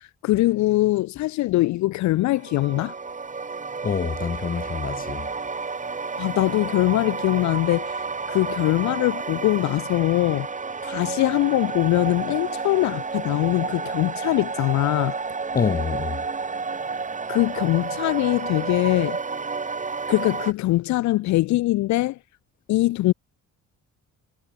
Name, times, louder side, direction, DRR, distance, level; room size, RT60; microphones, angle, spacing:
voice 1, 0.0-2.9 6.2-10.5 10.8-15.2 17.3-19.2 20.1-22.2 22.7-23.1, left 17 dB, 70° left, 0.4 m, -22 dB
sound 1, 2.3-20.5, right 4 dB, 25° right, 1.5 m, -31 dB
voice 2, 3.8-5.3 15.5-16.3, left 6 dB, 30° left, 0.7 m, -26 dB
cardioid pair, 90°, 30 cm